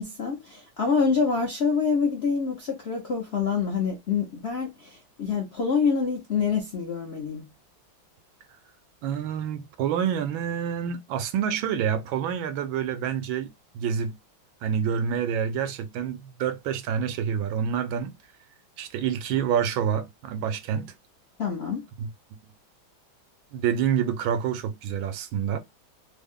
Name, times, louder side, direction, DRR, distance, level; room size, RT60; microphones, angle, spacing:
voice 1, 0.0-7.5 21.4-21.8, left 5 dB, 60° left, 0.6 m, -26 dB
voice 2, 9.0-14.2 14.6-18.1 18.8-20.9 22.0-22.1 23.5-25.6, right 8 dB, 80° right, 1.4 m, -27 dB
3.5 x 2.1 x 3.5 m
omnidirectional pair, 2.2 m